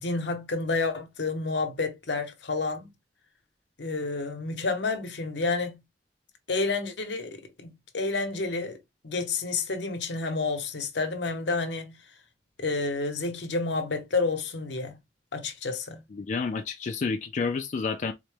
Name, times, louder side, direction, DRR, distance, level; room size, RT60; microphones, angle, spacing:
voice 1, 0.0-2.9 3.8-5.8 6.5-8.8 9.0-12.0 12.6-15.0 15.3-16.0, left 3 dB, 80° left, 0.9 m, -30 dB
voice 2, 16.1-18.1, left 4 dB, 45° left, 0.3 m, -30 dB
3.9 x 2.2 x 3.2 m
head